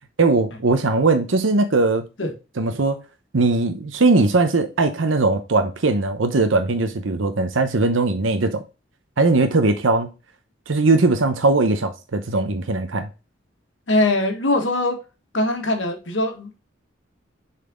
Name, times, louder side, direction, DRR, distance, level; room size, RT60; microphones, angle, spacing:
voice 1, 0.2-2.1 2.6-3.0 3.3-8.6 9.2-10.1 10.7-13.1, right 3 dB, 85° right, 0.8 m, -19 dB
voice 2, 13.9-15.0 15.3-16.6, left 2 dB, 75° left, 1.7 m, -21 dB
6.7 x 4.2 x 3.7 m
head